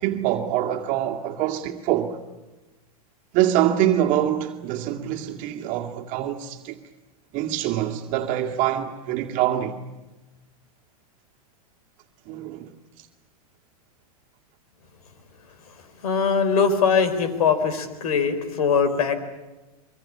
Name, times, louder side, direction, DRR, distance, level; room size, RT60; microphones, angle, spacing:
voice 1, 0.0-2.2 3.3-6.8 7.3-9.8 12.3-12.7, right 12 dB, 45° right, 2.2 m, -24 dB
voice 2, 16.0-19.1, left 6 dB, 75° left, 4.0 m, -21 dB
24.5 x 24.0 x 8.6 m
hypercardioid pair, 120°, 19 cm